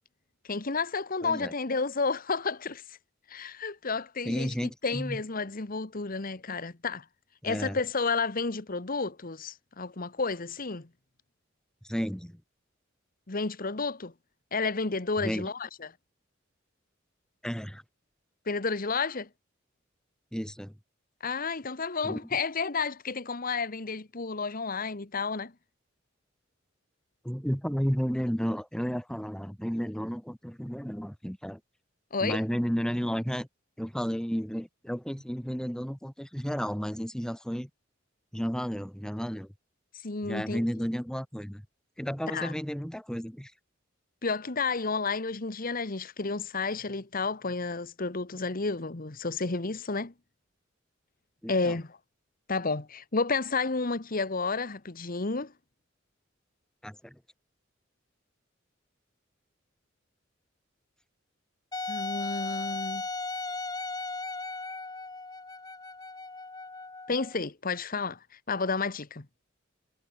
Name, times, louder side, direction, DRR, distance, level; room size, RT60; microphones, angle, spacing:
voice 1, 0.4-3.0 3.3-7.1 7.4-10.9 13.3-14.1 14.5-15.9 18.5-19.3 21.2-25.5 32.1-32.4 40.0-40.6 42.3-42.5 44.2-50.1 51.5-52.0 52.5-55.5 61.9-63.0 67.1-69.2, left 4 dB, 45° left, 1.3 m, -31 dB
voice 2, 1.2-1.5 4.2-5.2 7.4-7.8 11.8-12.4 15.2-15.5 17.4-17.8 20.3-20.7 22.0-22.2 27.2-31.6 32.2-33.5 33.8-37.7 38.3-39.5 40.3-41.6 42.0-43.5 51.4-51.8 56.8-57.2, equal, 5° left, 2.5 m, -32 dB
Wind instrument woodwind instrument, 61.7-67.4, left 3 dB, 20° left, 5.6 m, -36 dB
head